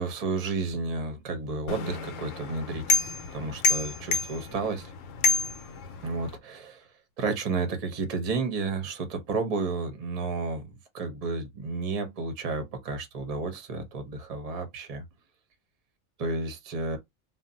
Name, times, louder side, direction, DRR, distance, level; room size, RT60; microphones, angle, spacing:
voice 1, 0.0-3.0 3.3-4.9 6.0-6.9 7.2-15.0 16.2-17.0, right 3 dB, 40° right, 0.5 m, -32 dB
sound 1, 1.7-6.4, left 4 dB, 70° left, 0.9 m, -29 dB
2.5 x 2.0 x 3.7 m
omnidirectional pair, 1.5 m